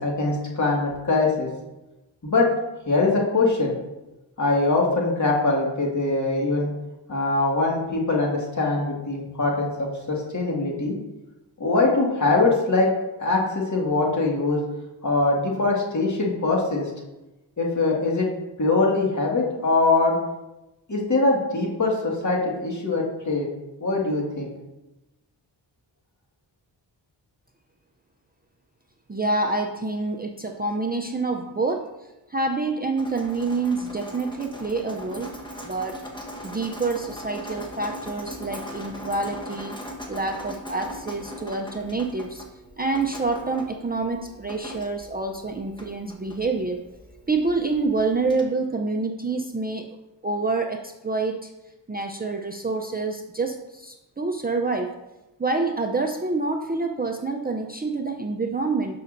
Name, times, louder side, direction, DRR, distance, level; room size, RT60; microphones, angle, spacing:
voice 1, 0.0-1.5 2.2-2.5 2.9-3.7 4.4-6.7 7.1-9.7 10.1-11.0 11.6-12.9 13.2-14.6 15.0-16.9 17.6-18.3 18.6-20.2 20.9-23.5 23.8-24.5, left 3 dB, 40° left, -2 dB, 2.1 m, -22 dB
voice 2, 29.1-31.9 32.3-35.3 35.6-36.0 36.4-39.8 40.1-42.4 42.8-46.8 47.3-49.9 50.2-51.5 51.9-55.0 55.4-59.0, right 3 dB, 20° right, 2 dB, 0.6 m, -27 dB
Drip, 33.0-48.4, equal, 10° left, 1.3 m, -40 dB
12.5 x 5.5 x 2.7 m, 1.0 s
wide cardioid pair, 90°, 45 cm